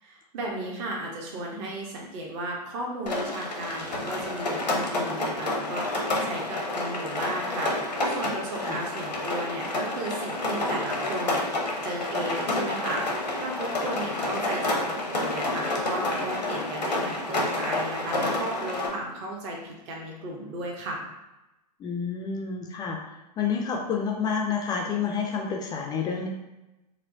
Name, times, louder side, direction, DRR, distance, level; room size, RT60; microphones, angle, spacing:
voice 1, 0.0-11.5 11.8-21.0, right 1 dB, 45° right, -1 dB, 0.8 m, -35 dB
Rain, 3.1-18.9, left 2 dB, 85° left, 0.7 m, -29 dB
voice 2, 21.8-23.0 23.4-26.3, left 6 dB, 20° left, 1 dB, 0.3 m, -29 dB
4.3 x 2.1 x 2.6 m, 0.96 s
figure-of-eight pair, 100°, 21 cm